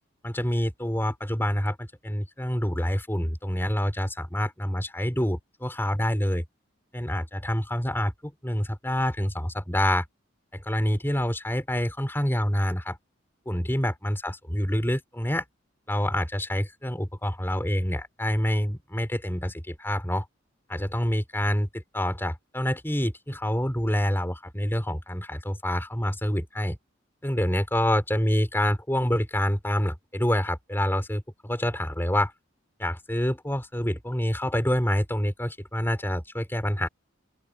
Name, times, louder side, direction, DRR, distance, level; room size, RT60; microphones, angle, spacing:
voice 1, 0.2-6.4 6.9-10.0 10.5-13.0 13.5-15.4 15.9-20.2 20.7-26.8 27.2-32.3 32.8-36.9, equal, 10° left, 4.0 m, -27 dB
open air
head